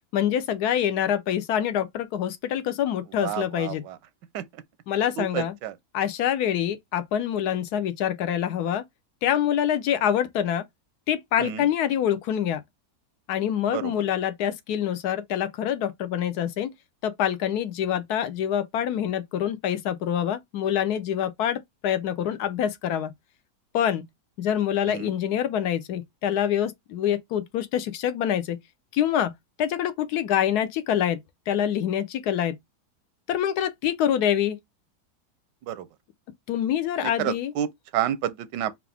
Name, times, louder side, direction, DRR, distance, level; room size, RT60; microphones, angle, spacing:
voice 1, 0.1-3.8 4.9-5.5 5.9-8.8 9.2-10.6 11.1-12.6 13.3-16.7 17.0-23.1 23.7-24.1 24.4-28.6 28.9-29.3 29.6-32.6 33.3-34.6 36.5-37.5, left 10 dB, 75° left, 1.1 m, -26 dB
voice 2, 3.2-4.0 4.3-4.6 5.2-5.8 11.4-11.7 13.7-13.9 24.8-25.1 35.6-35.9 37.0-38.7, right 11 dB, 90° right, 1.3 m, -30 dB
4.6 x 2.4 x 3.4 m
omnidirectional pair, 1.8 m